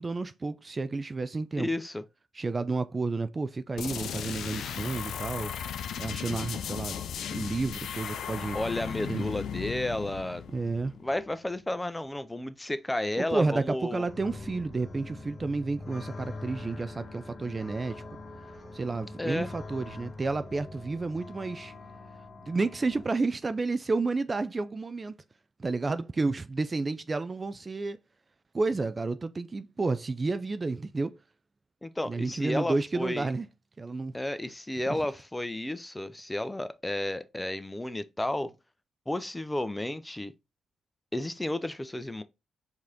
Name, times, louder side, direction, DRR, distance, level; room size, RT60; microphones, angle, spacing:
voice 1, 0.0-1.7 2.4-5.5 6.0-7.0 7.3-8.6 9.1-9.3 10.5-10.9 13.2-18.0 18.7-21.7 22.5-25.2 25.6-28.0 28.5-31.2 32.1-33.5 33.8-34.2 34.9-35.0, right 3 dB, 35° right, 0.3 m, -31 dB
voice 2, 1.6-2.0 8.5-10.5 10.9-14.1 19.2-19.5 31.8-33.3 34.1-38.5 39.1-40.3 41.1-42.2, left 1 dB, 15° left, 0.6 m, -32 dB
sound 1, 3.8-11.3, left 8 dB, 65° left, 0.4 m, -36 dB
sound 2, 14.0-23.1, left 2 dB, 40° left, 1.2 m, -44 dB
4.7 x 2.8 x 3.7 m
hypercardioid pair, 40°, 0 cm